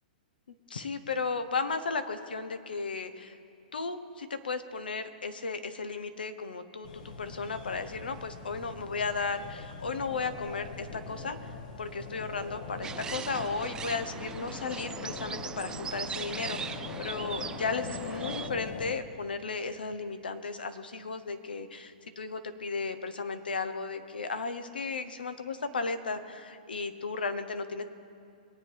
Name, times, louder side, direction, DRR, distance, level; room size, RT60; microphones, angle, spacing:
voice 1, 0.7-3.3 3.7-11.5 11.8-27.8, left 4 dB, 85° left, 10 dB, 1.1 m, -35 dB
sound 1, 6.8-18.9, left 4 dB, 60° left, 1.4 m, -42 dB
sound 2, 12.8-18.5, right 7 dB, 15° right, 0.4 m, -40 dB
23.0 x 8.5 x 4.7 m, 2.4 s
hypercardioid pair, 130°, 5 cm